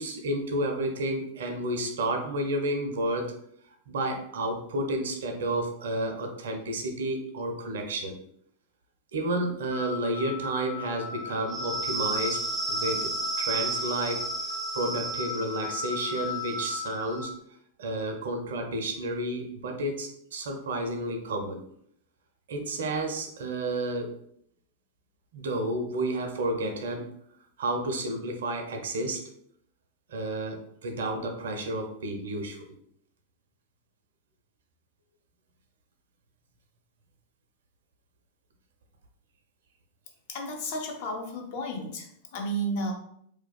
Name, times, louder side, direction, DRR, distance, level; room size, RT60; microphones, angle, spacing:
voice 1, 0.0-3.3 3.9-8.2 9.1-13.1 13.4-17.3 17.8-21.6 22.5-24.1 25.3-27.1 27.6-29.2 30.1-32.6, right 1 dB, 60° right, 4 dB, 0.4 m, -31 dB
sound 1, 9.7-17.3, equal, 5° right, 0.4 m, -33 dB
voice 2, 40.3-42.9, right 1 dB, 50° left, 2 dB, 0.5 m, -33 dB
2.5 x 2.2 x 2.2 m, 0.68 s
figure-of-eight pair, 90°, 0 cm